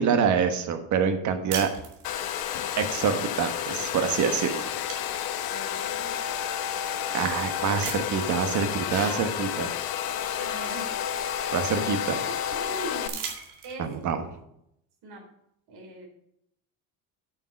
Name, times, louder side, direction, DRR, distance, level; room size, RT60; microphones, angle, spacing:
voice 1, 0.0-1.7 2.8-4.6 7.1-9.7 11.5-12.2 13.8-14.2, right 6 dB, 45° right, 7 dB, 1.3 m, -26 dB
sound 1, 1.5-2.5 3.9-4.1 4.4-6.0 6.7-6.8 7.8-8.4 9.8-9.9 10.3-11.9 12.9-14.0, right 7 dB, 85° right, 2.3 m, -39 dB
Domestic sounds home sounds, 2.0-13.1, left 10 dB, 65° left, 0.9 m, -31 dB
voice 2, 5.5-6.2 8.9-9.3 9.8-11.0 12.2-13.2 13.6-13.9 15.0-15.2 15.7-16.1, right 2 dB, 70° right, 1 dB, 3.7 m, -41 dB
8.7 x 6.4 x 5.9 m, 0.77 s
cardioid pair, 150°, 39 cm